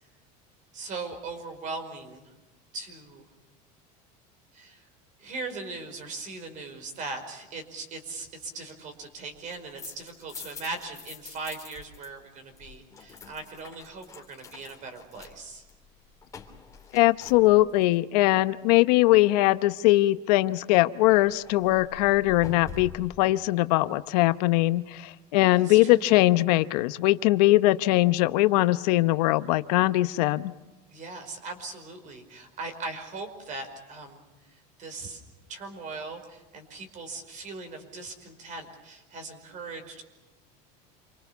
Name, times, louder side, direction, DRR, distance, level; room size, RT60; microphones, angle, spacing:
voice 1, 0.7-2.3 2.7-3.2 4.5-4.8 5.2-15.6 25.6-26.1 30.9-34.2 34.8-35.2 35.5-40.1, right 3 dB, 40° right, 7 dB, 5.1 m, -39 dB
sound 1, 9.5-12.1 12.3-17.9 21.0-23.2, left 6 dB, 15° left, 3.3 m, -46 dB
voice 2, 16.9-30.5, left 18 dB, 80° left, 13 dB, 0.9 m, -21 dB
28.0 x 24.5 x 7.0 m, 1.0 s
cardioid pair, 145°, 20 cm